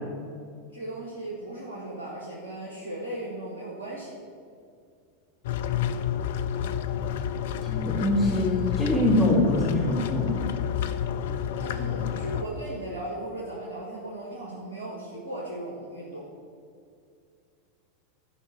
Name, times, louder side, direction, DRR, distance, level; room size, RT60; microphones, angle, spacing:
voice 1, 0.7-4.1 11.5-16.3, right 1 dB, 80° right, -5 dB, 1.6 m, -37 dB
sound 1, 5.4-12.4, left 9 dB, 60° left, 0.5 m, -29 dB
voice 2, 7.6-10.4, left 1 dB, 5° left, -8 dB, 2.5 m, -24 dB
11.0 x 5.2 x 6.1 m, 2.3 s
figure-of-eight pair, 85°, 0 cm